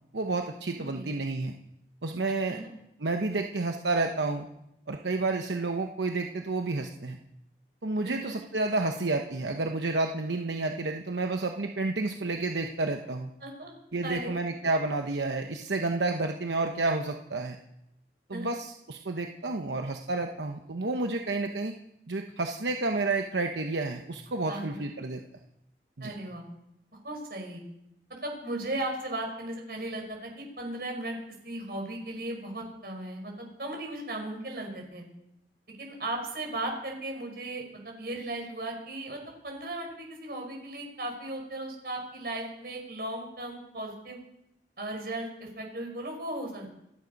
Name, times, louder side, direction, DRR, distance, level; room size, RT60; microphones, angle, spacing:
voice 1, 0.1-1.5 2.0-2.6 3.0-4.5 4.9-7.2 7.8-13.3 13.9-17.6 18.3-21.7 22.1-25.2 26.0-26.1, right 3 dB, 90° right, 4 dB, 1.0 m, -30 dB
voice 2, 8.0-8.3 13.4-13.7 14.0-14.4 18.3-18.5 24.5-24.8 26.0-26.5 26.9-27.6 28.1-31.1 31.4-35.1 35.8-39.2 39.4-44.2 44.8-46.8, right 1 dB, 60° right, 2 dB, 5.4 m, -36 dB
28.0 x 9.6 x 5.3 m, 0.81 s
head